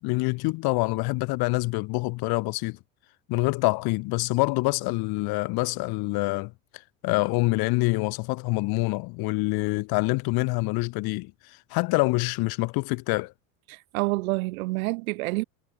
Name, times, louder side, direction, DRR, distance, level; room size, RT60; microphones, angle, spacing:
voice 1, 0.0-2.8 3.3-6.5 7.0-11.3 11.7-13.3, left 25 dB, 60° left, 5.4 m, -26 dB
voice 2, 13.7-15.4, right 23 dB, 85° right, 7.2 m, -28 dB
supercardioid pair, 135°, 41 cm